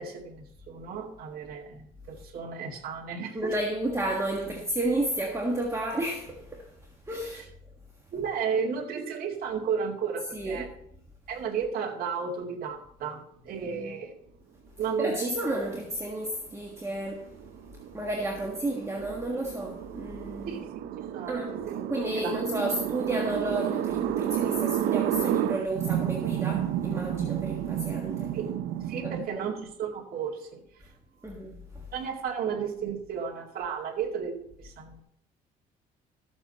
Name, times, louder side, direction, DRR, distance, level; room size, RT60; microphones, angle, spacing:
voice 1, 0.0-3.6 7.3-7.4 8.1-10.7 11.3-14.1 14.8-15.3 20.5-21.8 22.2-22.4 28.3-28.5 28.9-30.6 31.9-35.0, right 6 dB, 60° right, 2.2 m, -33 dB
voice 2, 3.3-6.8 7.1-7.4 10.3-10.7 13.8-13.9 15.0-17.4 17.9-20.6 21.3-21.6 21.9-28.4 29.0-29.4 31.2-31.9, right 1 dB, 15° right, 1.6 m, -32 dB
sound 1, 16.7-29.3, right 11 dB, 85° right, 0.5 m, -31 dB
13.5 x 7.4 x 4.2 m
cardioid pair, 110°, 17 cm